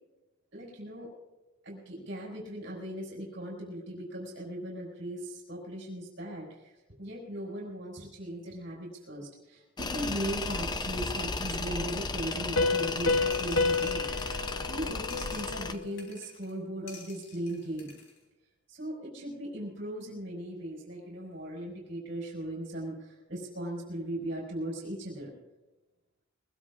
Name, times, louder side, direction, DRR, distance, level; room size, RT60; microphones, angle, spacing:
voice 1, 0.5-1.1 1.6-14.1 14.3-17.9 18.7-25.3, right 1 dB, 55° right, -5 dB, 5.1 m, -38 dB
Tools, 9.8-15.8, left 3 dB, 20° left, 0.5 m, -34 dB
Piano, 12.6-16.0, left 3 dB, 85° left, 0.8 m, -30 dB
sound 1, 13.3-14.8 15.1-16.5 16.9-18.2, left 4 dB, 60° left, 3.6 m, -51 dB
23.0 x 21.0 x 2.5 m, 1.0 s
head